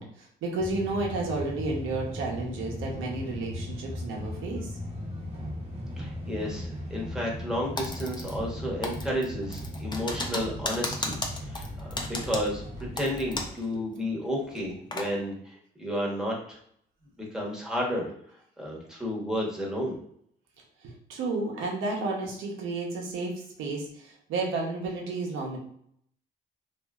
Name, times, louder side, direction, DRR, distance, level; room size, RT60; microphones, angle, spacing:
voice 1, 0.0-4.7 13.7-13.8 20.8-25.6, right 3 dB, 90° right, 0 dB, 0.8 m, -32 dB
sound 1, 0.6-13.5, left 1 dB, 35° right, 0.8 m, -38 dB
voice 2, 6.0-11.7 12.2-12.6 13.0-16.6 17.3-18.1 18.6-20.0, equal, 5° right, -3 dB, 1.0 m, -32 dB
Typing, 7.8-8.6 8.8-13.7 13.9-14.0 14.5-15.1, left 2 dB, 20° left, 0.5 m, -35 dB
2.8 x 2.5 x 2.3 m, 0.68 s
cardioid pair, 90°, 20 cm